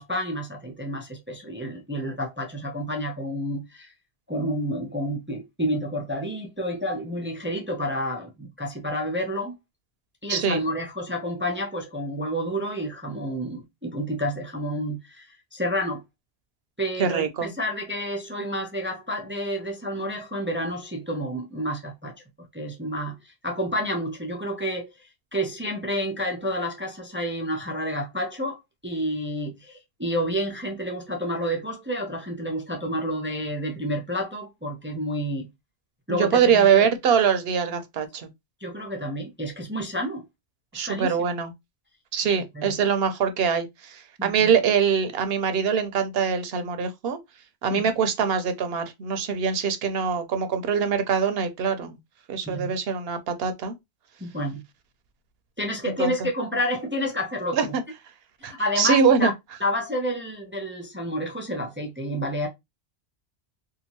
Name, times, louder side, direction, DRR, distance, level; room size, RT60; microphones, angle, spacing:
voice 1, 0.0-3.9 4.3-9.5 10.2-16.0 16.8-22.1 22.5-35.5 36.1-36.9 38.6-40.2 40.7-41.2 42.2-42.7 44.2-44.5 47.7-47.9 52.4-52.7 54.2-54.6 55.6-57.8 58.4-59.3 59.6-62.5, equal, 20° right, 0.3 m, -30 dB
voice 2, 10.3-10.6 17.0-17.5 36.2-38.3 40.7-41.5 42.1-47.2 47.6-52.0 52.3-53.7 56.0-56.1 57.5-57.8 58.4-59.3, right 6 dB, 70° right, 0.8 m, -23 dB
2.8 x 2.4 x 2.8 m
omnidirectional pair, 1.1 m